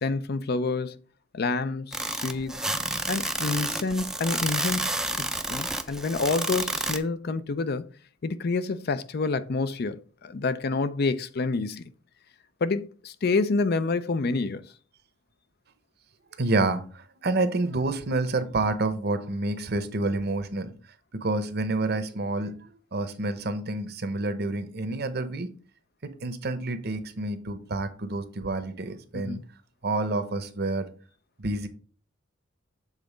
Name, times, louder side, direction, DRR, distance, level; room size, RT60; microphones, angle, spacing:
voice 1, 0.0-1.0 1.3-2.6 3.1-7.9 8.2-11.8 12.6-14.7 29.1-29.4, left 3 dB, 50° left, 0.5 m, -28 dB
sound 1, 1.9-7.0, right 1 dB, 5° right, 0.5 m, -30 dB
voice 2, 16.4-20.7 21.1-22.5 22.9-25.5 26.0-29.4 29.8-30.9 31.4-31.7, right 2 dB, 55° right, 0.8 m, -28 dB
7.4 x 3.8 x 5.0 m
head